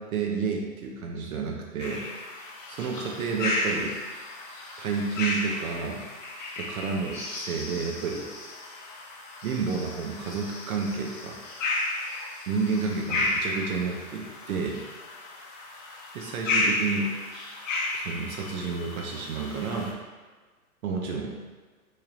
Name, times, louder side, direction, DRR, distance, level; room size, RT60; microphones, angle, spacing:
voice 1, 0.0-2.3 2.7-4.0 4.8-6.0 6.6-8.3 9.4-11.4 12.5-14.8 16.1-17.1 17.9-19.9 20.8-21.4, right 5 dB, 65° right, 0 dB, 0.7 m, -30 dB
sound 1, 1.8-19.9, left 2 dB, 55° left, 0.8 m, -33 dB
4.3 x 3.3 x 2.4 m, 1.4 s
hypercardioid pair, 120°, 46 cm